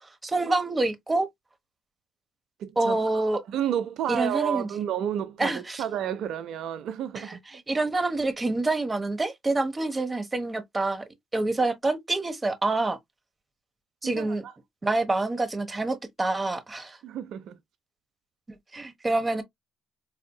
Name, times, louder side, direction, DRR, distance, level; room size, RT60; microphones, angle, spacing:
voice 1, 0.2-1.3 2.8-3.4 4.1-4.7 5.4-5.8 7.1-7.4 7.7-11.0 11.3-13.0 14.0-14.4 14.8-17.0 18.7-19.4, right 2 dB, 20° right, 1.1 m, -27 dB
voice 2, 2.6-3.0 3.5-7.4 14.0-14.5 17.0-17.6, right 10 dB, 80° right, 0.4 m, -31 dB
4.2 x 2.7 x 2.2 m
cardioid pair, 90°, 0 cm